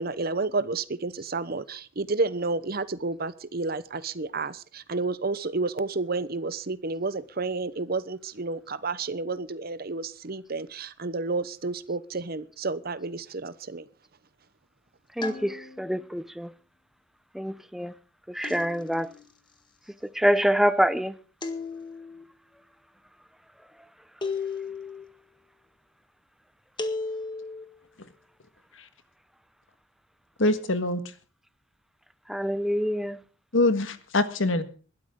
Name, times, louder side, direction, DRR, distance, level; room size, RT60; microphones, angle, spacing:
voice 1, 0.0-13.8, right 3 dB, 50° right, 0.9 m, -30 dB
sound 1, 15.2-16.0 18.4-19.2 21.4-22.2 24.2-25.0 26.8-27.6, left 4 dB, 25° left, 1.8 m, -35 dB
voice 2, 15.2-16.5 17.3-17.9 18.3-19.1 20.1-21.1 32.3-33.2, equal, ahead, 0.6 m, -26 dB
voice 3, 30.4-31.0 33.5-34.6, left 2 dB, 85° left, 1.7 m, -23 dB
21.0 x 12.5 x 3.8 m
head